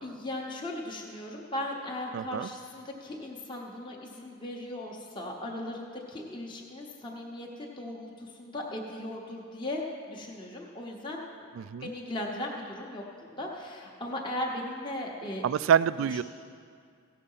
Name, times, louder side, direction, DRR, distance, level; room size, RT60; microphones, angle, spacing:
voice 1, 0.0-11.5 11.8-15.4 16.1-16.2, left 1 dB, 25° left, -2 dB, 1.0 m, -37 dB
voice 2, 2.1-2.5 11.6-11.9 15.4-16.2, right 8 dB, 80° right, 16 dB, 0.3 m, -26 dB
16.5 x 6.7 x 5.5 m, 2.2 s
head